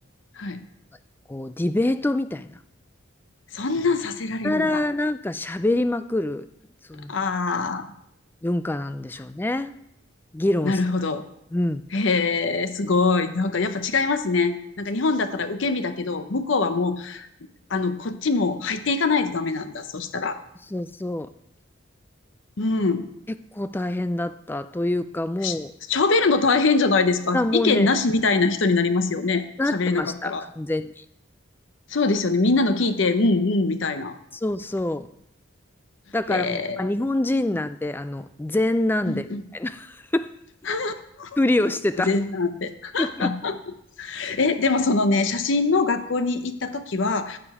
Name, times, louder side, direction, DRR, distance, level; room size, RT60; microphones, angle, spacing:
voice 1, 1.3-2.6 4.4-6.5 6.9-7.1 8.4-9.8 10.3-10.8 11.5-11.9 20.7-21.3 23.5-25.7 27.3-27.9 29.6-31.0 34.3-35.1 36.1-39.3 39.5-40.3 41.4-42.2 43.0-43.3, left 1 dB, 10° left, 12 dB, 0.3 m, -25 dB
voice 2, 3.5-4.8 7.1-7.9 10.6-11.2 11.9-17.3 17.7-20.4 22.6-23.1 25.4-25.6 25.9-29.4 29.7-30.4 31.9-34.1 36.3-36.8 39.1-39.4 40.7-41.3 42.1-43.6 44.0-47.4, left 3 dB, 65° left, 9 dB, 0.7 m, -23 dB
15.0 x 5.1 x 4.8 m, 0.76 s
head